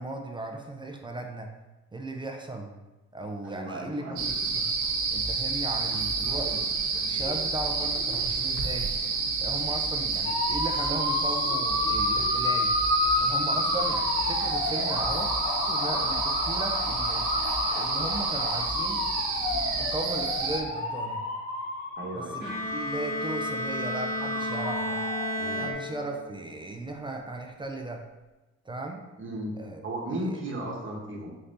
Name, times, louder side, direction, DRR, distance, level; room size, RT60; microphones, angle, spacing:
voice 1, 0.0-1.5 1.9-2.7 3.1-4.7 5.1-8.9 9.4-12.7 13.2-15.3 15.7-17.2 17.7-19.0 19.8-21.2 22.1-25.0 25.5-28.0 28.6-29.0 29.6-29.8 30.3-30.4, right 2 dB, 15° right, 3 dB, 0.4 m, -36 dB
voice 2, 3.4-4.3 13.4-13.7 22.0-22.4 25.4-25.7 29.2-29.6 29.8-31.4, right 1 dB, 40° right, -1 dB, 1.0 m, -35 dB
sound 1, 4.2-20.6, right 4 dB, 80° right, 0.7 m, -29 dB
sound 2, 10.2-25.7, left 3 dB, 50° left, 0.9 m, -30 dB
Bowed string instrument, 22.4-26.4, equal, 30° left, 1.4 m, -32 dB
4.1 x 3.3 x 2.6 m, 1.1 s
cardioid pair, 90°, 30 cm